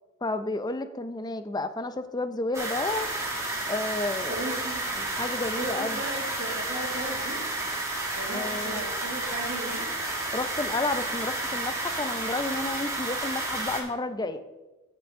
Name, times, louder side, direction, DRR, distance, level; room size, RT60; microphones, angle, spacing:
voice 1, 0.2-3.1 3.7-4.4 4.9-6.0 8.3-8.9 10.3-14.4, left 2 dB, 20° left, 10 dB, 0.5 m, -31 dB
sound 1, 2.5-13.8, right 2 dB, 15° right, 2.0 m, -31 dB
voice 2, 4.3-4.8 5.5-7.5 8.1-9.9, right 2 dB, 65° right, -4 dB, 2.4 m, -36 dB
16.0 x 6.1 x 3.6 m, 1.1 s
head